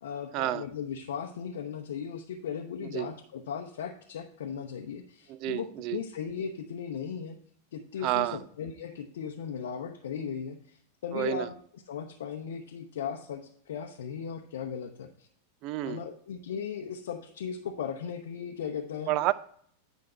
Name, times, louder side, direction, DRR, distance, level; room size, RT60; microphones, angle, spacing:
voice 1, 0.0-7.4 7.7-15.3 15.8-19.1, left 7 dB, 60° left, 2 dB, 0.7 m, -37 dB
voice 2, 5.4-6.0 8.0-8.4 11.1-11.5 15.6-16.0 19.1-19.3, right 15 dB, 40° right, 18 dB, 0.4 m, -29 dB
9.7 x 5.1 x 4.3 m, 0.62 s
figure-of-eight pair, 90°, 0 cm